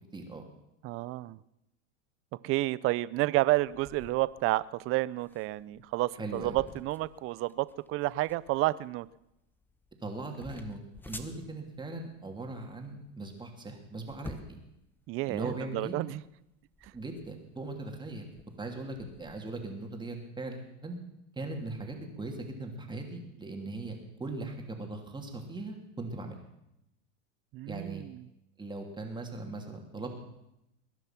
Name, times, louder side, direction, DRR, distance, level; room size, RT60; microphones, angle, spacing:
voice 1, 0.1-0.4 6.2-6.6 10.0-14.6 15.3-15.9 16.9-18.2 18.6-21.0 21.3-26.4 27.7-28.0 28.6-30.2, right 2 dB, 10° right, 2 dB, 2.9 m, -39 dB
voice 2, 0.8-1.4 2.4-9.1 15.1-16.2 27.5-28.1, right 18 dB, 35° right, 19 dB, 0.6 m, -30 dB
sound 1, 3.7-19.4, left 2 dB, 5° left, 1.1 m, -52 dB
21.0 x 10.5 x 5.9 m, 0.86 s
supercardioid pair, 120°, 37 cm